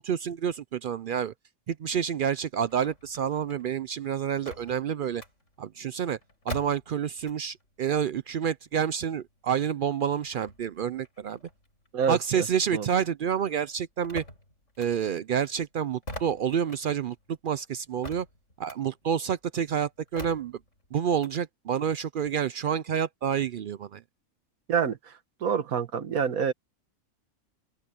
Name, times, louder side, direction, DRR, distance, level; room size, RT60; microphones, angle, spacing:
voice 1, 0.0-1.3 1.7-5.2 5.6-6.2 6.5-11.4 12.1-14.2 14.8-17.2 17.4-18.3 18.6-20.6 20.9-24.0, right 8 dB, 70° right, 0.5 m, -28 dB
sound 1, 2.5-7.7 8.0-12.8 13.1-21.4, left 1 dB, 60° left, 8.1 m, -45 dB
voice 2, 11.9-12.4 12.7-12.9 24.7-25.1 25.4-26.5, right 7 dB, 90° right, 1.7 m, -27 dB
open air
omnidirectional pair, 1.4 m